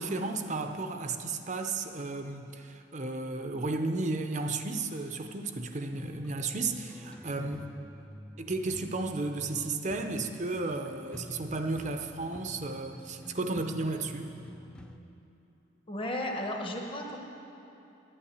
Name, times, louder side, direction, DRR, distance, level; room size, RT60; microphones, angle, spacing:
voice 1, 0.0-7.7 8.4-14.3, right 3 dB, 35° right, 5 dB, 0.6 m, -33 dB
sound 1, 5.9-15.0, equal, 5° left, 0.4 m, -48 dB
voice 2, 15.9-17.2, left 1 dB, 25° left, 1 dB, 1.1 m, -34 dB
11.0 x 8.7 x 8.4 m, 2.9 s
head